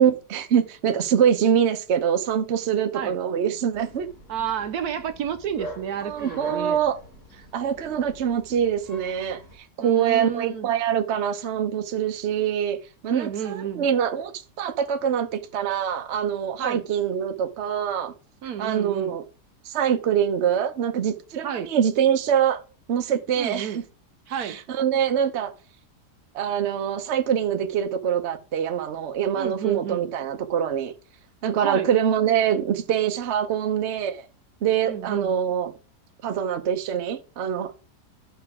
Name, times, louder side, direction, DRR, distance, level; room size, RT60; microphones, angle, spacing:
voice 1, 0.0-4.1 6.0-7.0 7.5-9.4 9.8-12.8 13.0-14.3 14.6-18.1 18.6-19.2 19.6-22.6 22.9-23.8 24.4-25.5 26.3-30.9 31.4-34.3 34.6-35.7 36.2-37.7, right 8 dB, 50° right, 0.9 m, -24 dB
Bark, 3.7-9.6, right 2 dB, 50° left, 4.7 m, -43 dB
voice 2, 4.3-6.8 9.8-10.7 13.1-13.9 16.6-16.8 18.4-19.2 21.4-21.7 23.4-23.8 24.3-24.6 29.4-30.1 31.6-31.9 34.9-35.3, right 8 dB, 70° right, 1.1 m, -31 dB
11.0 x 5.8 x 3.6 m
omnidirectional pair, 1.8 m